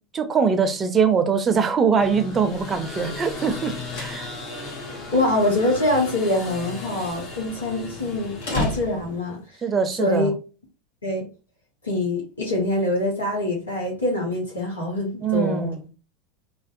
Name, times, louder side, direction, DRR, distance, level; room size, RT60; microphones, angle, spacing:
voice 1, 0.1-4.3 9.6-10.3 15.2-15.9, right 6 dB, 25° right, 0.5 m, -22 dB
sound 1, 2.0-8.8, left 3 dB, 45° left, 1.0 m, -36 dB
sound 2, 3.6-9.4, left 1 dB, 65° left, 1.0 m, -35 dB
voice 2, 5.1-9.4 10.0-10.3 11.0-11.2 11.8-15.7, left 1 dB, 90° left, 0.8 m, -24 dB
2.5 x 2.1 x 2.5 m
hypercardioid pair, 85°, 0 cm